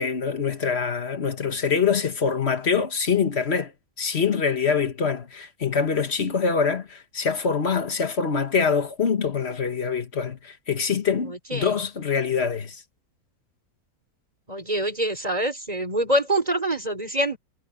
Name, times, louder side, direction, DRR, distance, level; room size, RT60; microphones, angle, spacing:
voice 1, 0.0-3.7 4.0-12.8, left 6 dB, 45° left, 1.7 m, -24 dB
voice 2, 11.2-11.8 14.5-17.4, right 1 dB, 25° right, 4.6 m, -25 dB
omnidirectional pair, 1.6 m